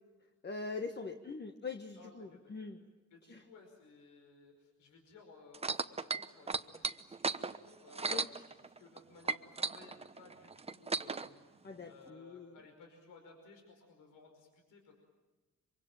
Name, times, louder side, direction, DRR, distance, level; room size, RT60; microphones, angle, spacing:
voice 1, 0.4-2.8 3.3-3.4 8.1-8.3 11.6-12.6, left 4 dB, 35° left, 5 dB, 1.6 m, -43 dB
voice 2, 2.0-2.7 3.1-11.4 11.8-14.9, left 3 dB, 85° left, 3 dB, 5.2 m, -58 dB
sound 1, 5.5-9.0 9.2-11.3 12.1-12.2, right 4 dB, 20° right, 1.0 m, -35 dB
25.0 x 24.0 x 9.1 m, 1.2 s
cardioid pair, 90°, 30 cm